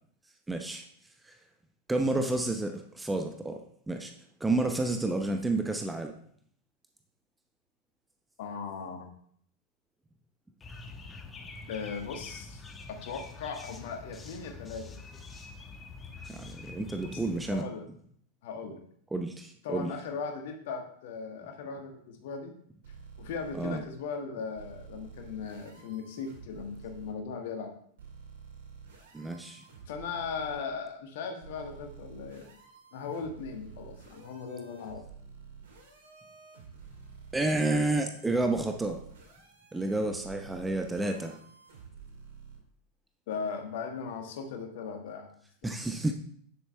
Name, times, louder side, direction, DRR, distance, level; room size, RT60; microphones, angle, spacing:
voice 1, 0.5-0.8 1.3-1.4 1.9-3.6 3.9-4.1 4.4-6.1 16.3-17.6 19.1-19.9 23.5-23.8 29.1-29.6 37.3-39.0 39.7-41.4 45.6-46.1, right 2 dB, 10° right, 5 dB, 0.7 m, -30 dB
voice 2, 8.4-9.1 11.7-12.6 12.9-14.8 17.1-17.2 17.5-17.8 18.4-18.8 19.6-22.5 23.2-27.7 29.9-32.4 32.9-35.0 43.3-45.3 45.6-45.8, left 5 dB, 55° left, 4 dB, 1.6 m, -38 dB
sound 1, 10.6-17.6, left 3 dB, 15° left, 1.2 m, -45 dB
sound 2, 22.8-23.7 24.5-27.1 28.0-30.6 31.4-42.6, right 6 dB, 60° right, 2.3 m, -50 dB
9.3 x 7.6 x 3.4 m, 0.63 s
figure-of-eight pair, 90°, 0 cm